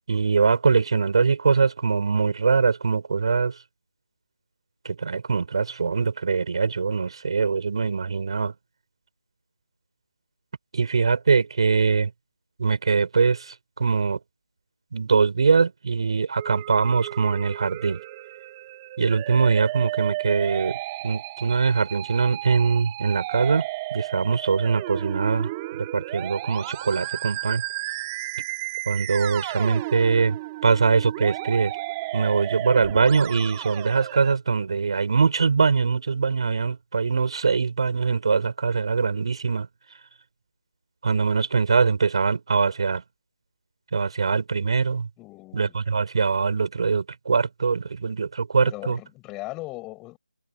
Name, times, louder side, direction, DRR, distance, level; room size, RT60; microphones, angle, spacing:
voice 1, 0.1-3.6 4.8-8.5 10.7-12.1 12.6-14.2 14.9-18.0 19.0-27.6 28.9-31.7 32.1-39.7 41.0-43.0 43.9-45.1 45.5-49.0, right 5 dB, 45° right, 5.7 m, -22 dB
Musical instrument, 16.4-34.3, right 20 dB, 15° right, 2.3 m, -34 dB
voice 2, 45.2-45.8 48.6-50.2, left 21 dB, 10° left, 5.4 m, -38 dB
figure-of-eight pair, 165°, 4 cm